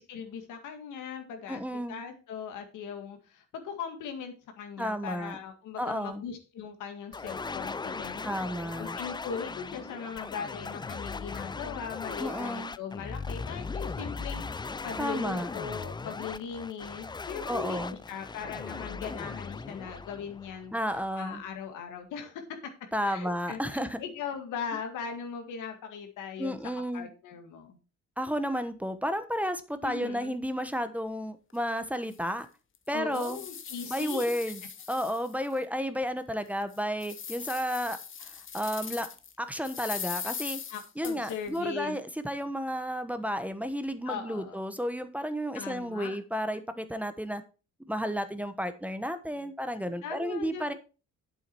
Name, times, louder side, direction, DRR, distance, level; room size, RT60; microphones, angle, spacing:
voice 1, 0.0-8.3 8.8-20.7 21.1-22.6 23.0-26.6 26.9-27.8 29.8-30.4 32.9-34.3 40.7-42.0 44.1-44.6 45.5-46.2 50.0-50.7, left 7 dB, 85° left, 2.1 m, -39 dB
voice 2, 1.5-2.0 4.8-5.4 5.8-6.2 8.2-9.0 12.2-12.7 15.0-15.5 17.5-18.0 20.7-21.4 22.9-24.0 26.4-27.1 28.2-32.5 32.9-33.4 33.9-34.6 34.9-39.1 39.4-40.6 41.0-47.4 47.9-50.7, equal, 5° right, 1.0 m, -32 dB
sound 1, 7.1-21.0, left 4 dB, 15° left, 0.4 m, -38 dB
sound 2, 31.5-31.6 32.1-32.2 32.7-35.6 36.0-36.1 36.6-39.3 39.6-41.6, left 7 dB, 40° left, 1.1 m, -40 dB
8.5 x 7.2 x 4.6 m
cardioid pair, 90°, 30 cm